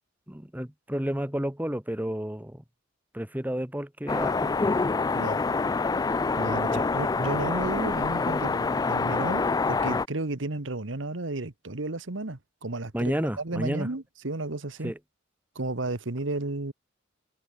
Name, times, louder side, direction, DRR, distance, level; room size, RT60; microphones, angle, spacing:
voice 1, 0.3-2.6 3.1-4.7 6.7-6.8 12.9-13.9 14.8-15.0, equal, 10° right, 1.8 m, -31 dB
sound 1, 4.1-10.1, left 4 dB, 20° left, 0.3 m, -26 dB
voice 2, 6.4-14.9 15.5-16.7, right 2 dB, 75° right, 1.5 m, -33 dB
head